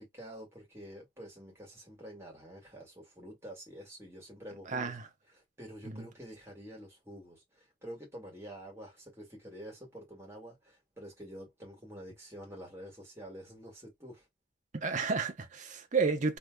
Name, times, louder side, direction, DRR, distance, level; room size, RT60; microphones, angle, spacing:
voice 1, 0.0-4.9 5.3-14.3, equal, 15° right, 1.7 m, -48 dB
voice 2, 4.7-5.0 5.9-6.0 14.7-16.4, right 4 dB, 40° right, 0.7 m, -31 dB
3.3 x 2.8 x 2.2 m
head